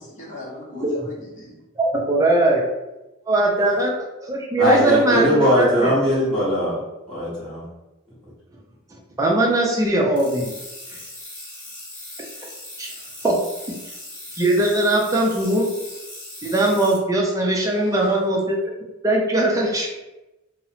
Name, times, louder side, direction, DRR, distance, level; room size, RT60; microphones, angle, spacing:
voice 1, 0.0-1.6 17.6-18.2, left 1 dB, 35° left, -4 dB, 0.7 m, -39 dB
voice 2, 1.8-2.6 3.3-3.9 4.2-5.9 9.2-10.5 12.8-12.9 13.2-13.3 14.4-15.7 16.4-18.6 19.0-19.9, right 1 dB, 15° right, -2 dB, 0.4 m, -20 dB
voice 3, 4.6-6.8 7.1-7.7 8.2-8.3, equal, 5° left, -13 dB, 1.0 m, -20 dB
sound 1, 10.2-17.0, left 1 dB, 20° left, 1.0 m, -39 dB
2.8 x 2.0 x 2.7 m, 1.0 s
head